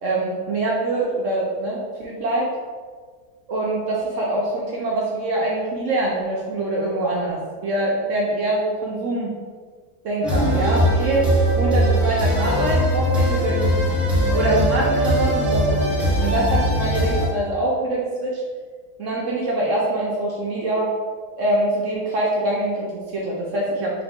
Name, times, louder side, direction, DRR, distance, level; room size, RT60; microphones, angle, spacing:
voice 1, 0.0-2.5 3.5-9.3 10.0-11.2 11.6-14.0 14.3-18.4 19.0-20.9 21.4-23.9, right 2 dB, 60° right, -4 dB, 0.9 m, -24 dB
sound 1, 10.2-17.3, equal, ahead, 0.7 m, -20 dB
4.0 x 2.9 x 3.5 m, 1.5 s
omnidirectional pair, 1.7 m